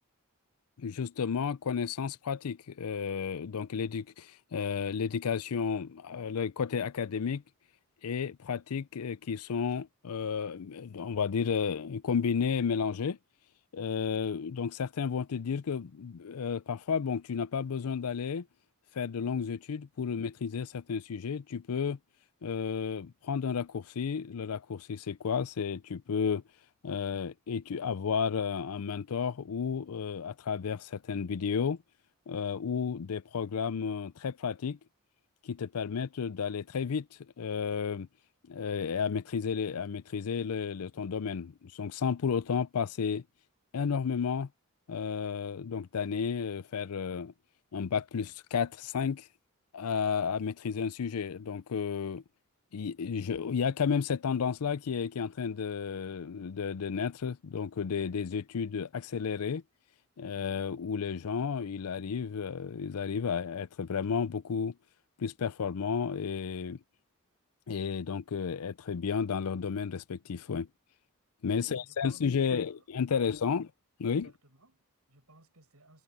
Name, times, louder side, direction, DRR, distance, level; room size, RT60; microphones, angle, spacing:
voice 1, 0.8-7.4 8.0-13.2 13.7-18.5 18.9-22.0 22.4-26.4 26.8-31.8 32.3-34.8 35.4-37.1 37.4-38.1 38.5-43.2 43.7-44.5 44.9-47.3 47.7-49.3 49.7-52.2 52.7-59.6 60.2-64.7 65.2-66.8 67.7-70.7 71.4-73.7 74.0-74.3, left 6 dB, 85° left, 0.5 m, -32 dB
voice 2, 71.5-72.9 73.1-73.6 74.1-76.0, right 2 dB, 85° right, 7.1 m, -60 dB
head